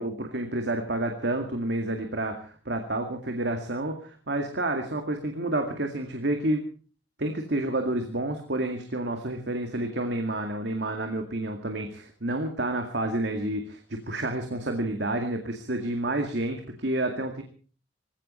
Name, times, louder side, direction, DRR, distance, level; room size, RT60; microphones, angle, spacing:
voice 1, 0.0-6.6 7.2-17.4, right 1 dB, 65° right, 4 dB, 2.2 m, -29 dB
19.5 x 16.0 x 4.4 m, 0.40 s
head